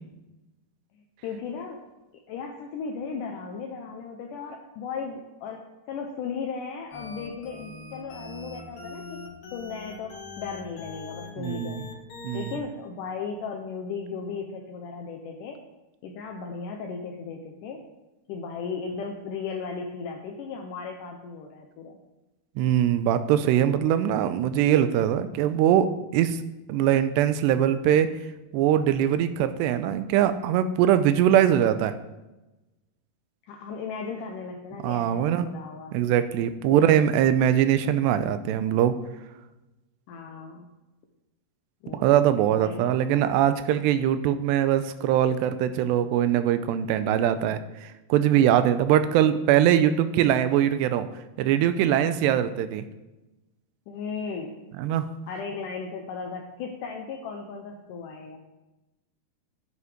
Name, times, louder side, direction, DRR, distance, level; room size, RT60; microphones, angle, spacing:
voice 1, 1.2-1.8 2.3-5.6 5.9-9.2 9.5-11.9 12.3-15.6 16.0-17.8 18.3-22.0 33.5-35.9 36.7-37.0 40.1-40.6 41.8-43.2 52.2-52.3 53.9-54.6 55.3-58.4, left 5 dB, 75° left, 2 dB, 2.0 m, -36 dB
sound 1, 6.9-12.6, left 3 dB, 60° left, 3.8 m, -41 dB
voice 2, 11.4-11.8 12.2-12.6 22.6-26.4 26.7-28.1 28.5-31.9 34.8-35.4 35.9-39.0 41.9-51.1 51.4-52.8 54.8-55.1, right 10 dB, 90° right, 11 dB, 2.8 m, -22 dB
9.8 x 9.4 x 5.1 m, 1.0 s
omnidirectional pair, 4.8 m